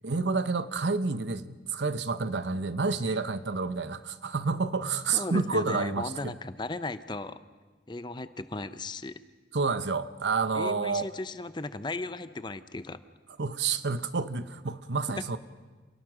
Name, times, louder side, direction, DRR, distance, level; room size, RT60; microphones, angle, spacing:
voice 1, 0.0-6.4 9.5-11.1 13.4-15.4, right 4 dB, 90° right, 12 dB, 0.9 m, -29 dB
voice 2, 5.1-7.4 7.9-9.2 10.5-13.0, left 2 dB, 25° left, 12 dB, 0.7 m, -36 dB
27.0 x 19.5 x 6.2 m, 1.3 s
head